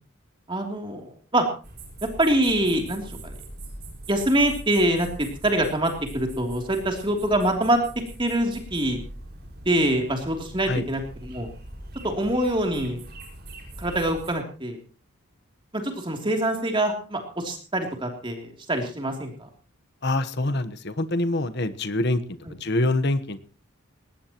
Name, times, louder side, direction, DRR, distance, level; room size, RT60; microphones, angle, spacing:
voice 1, 0.5-1.5 2.2-3.3 4.1-7.8 8.2-9.0 9.6-11.5 12.0-13.0 13.8-14.8 15.7-19.5 22.5-22.6, right 1 dB, 25° right, 3 dB, 3.1 m, -25 dB
sound 1, 1.6-14.3, right 1 dB, 50° right, 5.6 m, -42 dB
voice 2, 20.0-23.4, left 2 dB, 50° left, 11 dB, 1.2 m, -25 dB
20.5 x 19.0 x 3.0 m, 0.36 s
head